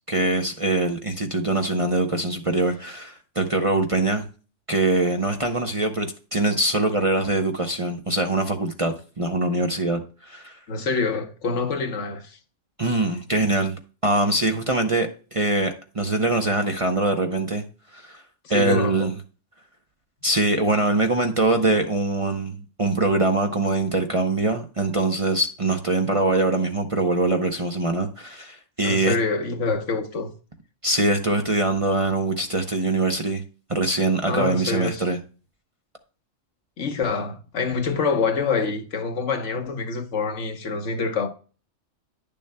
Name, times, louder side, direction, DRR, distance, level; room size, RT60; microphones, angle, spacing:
voice 1, 0.1-4.3 4.7-10.6 12.8-17.6 17.9-18.2 18.5-19.1 20.2-22.5 22.8-29.1 30.8-33.4 33.7-35.2, right 2 dB, 35° right, 0.7 m, -23 dB
voice 2, 10.7-12.4 18.5-19.1 28.8-30.3 34.3-35.0 36.8-41.3, left 4 dB, 70° left, 1.3 m, -26 dB
10.0 x 6.9 x 2.2 m
omnidirectional pair, 1.3 m